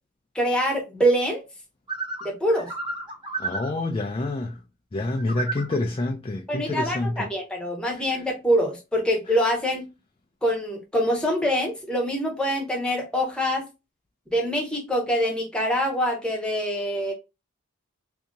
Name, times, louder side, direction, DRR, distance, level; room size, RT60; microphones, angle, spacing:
voice 1, 0.3-1.4 2.2-2.7 6.5-9.8 10.4-13.6 14.3-17.1, equal, 5° left, 0.9 m, -24 dB
sound 1, 1.9-3.8 5.2-5.8, right 4 dB, 20° right, 0.9 m, -32 dB
voice 2, 3.4-4.5 4.9-7.3, left 2 dB, 25° left, 0.3 m, -27 dB
2.7 x 2.7 x 3.6 m
head